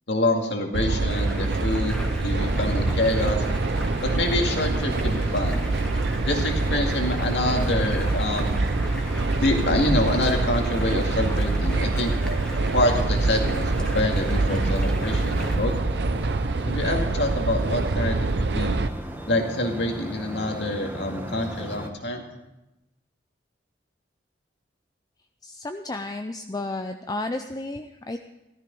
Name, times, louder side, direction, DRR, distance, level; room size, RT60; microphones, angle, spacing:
voice 1, 0.1-3.4 4.0-5.6 6.3-8.5 9.4-12.1 12.7-15.8 16.7-18.8 19.3-22.2, left 1 dB, 75° left, 3 dB, 2.2 m, -26 dB
sound 1, 0.7-18.9, right 3 dB, 70° right, 0.7 m, -25 dB
Stream, 1.1-15.6, equal, 5° left, 1.4 m, -38 dB
sound 2, 2.4-21.9, right 1 dB, 10° right, 1.3 m, -37 dB
voice 2, 25.4-28.2, left 2 dB, 20° left, 6 dB, 0.5 m, -32 dB
14.5 x 13.0 x 5.4 m, 0.94 s
head